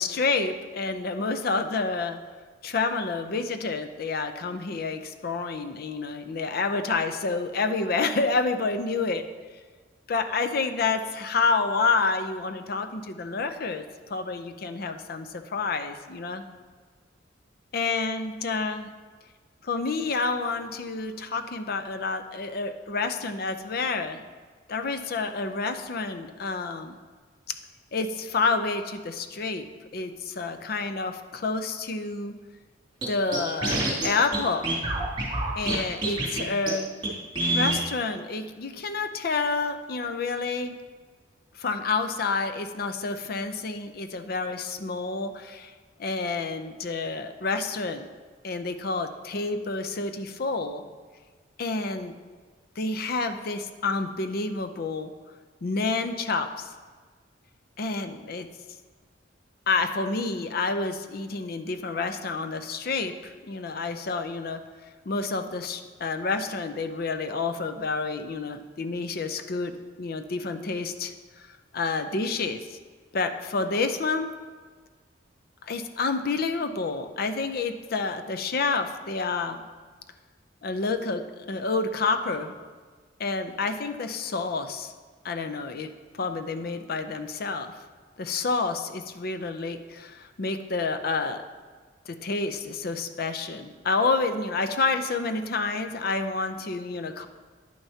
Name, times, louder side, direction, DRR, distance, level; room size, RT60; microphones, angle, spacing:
voice 1, 0.0-2.2 2.6-9.2 10.1-13.8 14.1-16.4 17.7-18.9 19.7-24.2 24.7-27.0 27.5-27.6 27.9-29.6 29.9-32.4 33.1-34.7 35.6-36.9 37.5-40.8 41.6-45.7 46.0-48.1 48.4-50.8 51.6-52.2 52.8-55.1 55.6-56.7 57.8-58.5 59.7-64.6 65.1-69.7 70.0-71.5 71.7-72.8 73.1-74.3 75.6-79.6 80.6-82.5 83.2-84.9 85.2-87.7 88.2-91.4 92.1-97.3, left 4 dB, 55° left, 8 dB, 0.5 m, -29 dB
Scratching (performance technique), 33.0-33.1 33.3-34.1 34.3-34.4 34.6-35.8 36.0-36.4 36.7-36.8 37.0-37.1 37.3-37.8, right 2 dB, 25° right, 2.6 m, -26 dB
10.0 x 8.9 x 2.8 m, 1.5 s
head